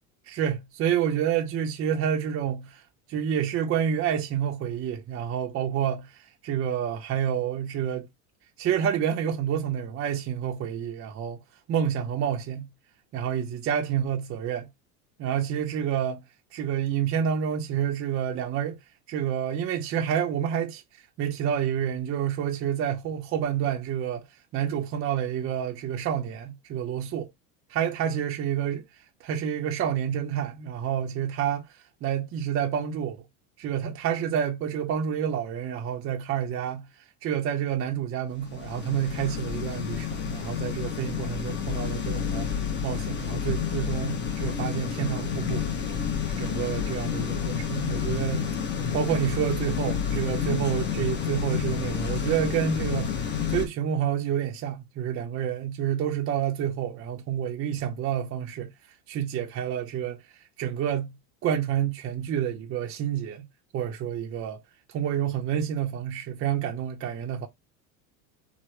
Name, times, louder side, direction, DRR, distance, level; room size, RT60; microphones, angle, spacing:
voice 1, 0.3-2.8 3.1-8.1 8.6-11.4 11.7-12.7 13.1-14.7 15.2-16.2 16.5-18.8 19.1-20.8 21.2-24.2 24.5-27.3 27.7-28.8 29.2-31.7 32.0-33.2 33.6-36.8 37.2-42.5 42.8-45.7 46.4-48.5 48.9-58.7 59.1-60.2 60.6-61.2 61.4-63.5 63.7-64.6 64.9-67.5, right 9 dB, 35° right, 0.5 m, -28 dB
sound 1, 38.4-53.7, left 7 dB, 25° left, 0.7 m, -30 dB
3.2 x 2.0 x 3.0 m
supercardioid pair, 110°, 42 cm